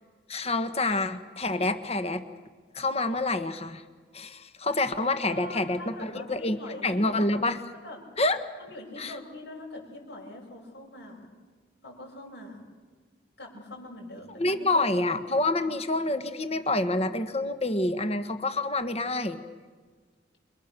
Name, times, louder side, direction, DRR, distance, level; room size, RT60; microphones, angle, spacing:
voice 1, 0.3-2.2 2.7-3.8 4.1-7.6 8.2-8.4 9.0-9.1 14.4-19.4, left 2 dB, 35° left, 9 dB, 1.5 m, -27 dB
voice 2, 5.3-7.3 7.8-8.0 8.6-11.3 11.8-12.6 13.4-15.1, left 1 dB, 65° left, -1 dB, 7.3 m, -43 dB
28.5 x 25.0 x 6.9 m, 1.5 s
head